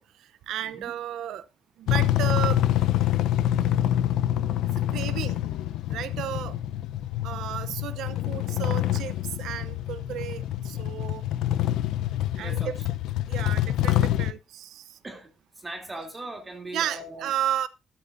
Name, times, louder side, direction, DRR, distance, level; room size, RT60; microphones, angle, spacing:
voice 1, 0.0-1.5 1.8-3.0 4.9-5.4 5.9-6.6 7.2-11.2 12.3-12.7 13.3-15.0 16.7-17.7, right 11 dB, 80° right, 0.8 m, -33 dB
voice 2, 0.6-0.9 12.4-12.7 15.0-17.3, right 1 dB, 20° right, 3.1 m, -40 dB
sound 1, 1.9-14.3, left 12 dB, 90° left, 0.7 m, -26 dB
20.5 x 9.0 x 2.7 m
cardioid pair, 90°, 0 cm